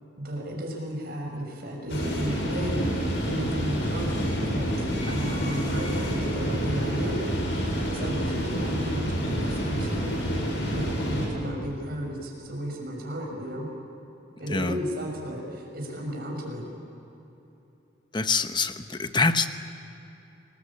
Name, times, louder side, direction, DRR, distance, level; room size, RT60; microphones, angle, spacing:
voice 1, 0.2-10.1 10.7-13.7 14.4-16.6, equal, 50° right, 0 dB, 6.3 m, -34 dB
sound 1, 1.9-11.3, equal, 70° left, 6.2 m, -28 dB
voice 2, 18.1-19.5, left 4 dB, 25° left, 9 dB, 1.0 m, -25 dB
29.0 x 20.5 x 8.6 m, 2.9 s
head